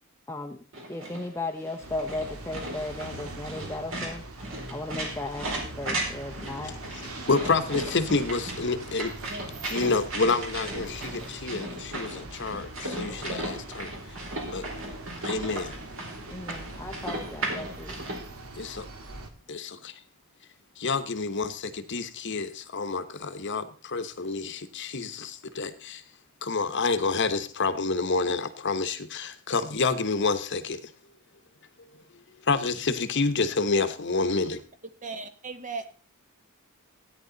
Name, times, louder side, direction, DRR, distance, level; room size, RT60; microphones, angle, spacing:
voice 1, 0.3-0.6 0.9-4.2 4.7-7.1 16.3-18.1, left 2 dB, 15° left, 0.7 m, -36 dB
sound 1, 0.7-18.2, right 1 dB, 65° right, 4.7 m, -36 dB
sound 2, 1.8-19.3, right 2 dB, 90° right, 1.9 m, -42 dB
voice 2, 7.2-9.1 9.7-13.9 14.5-14.7 15.2-15.7 18.6-18.9 19.5-20.0 20.8-26.0 26.4-30.9 32.4-34.6, left 4 dB, 60° left, 1.1 m, -28 dB
voice 3, 9.3-9.7 35.0-35.9, right 3 dB, 35° right, 1.3 m, -37 dB
16.5 x 9.8 x 4.0 m
head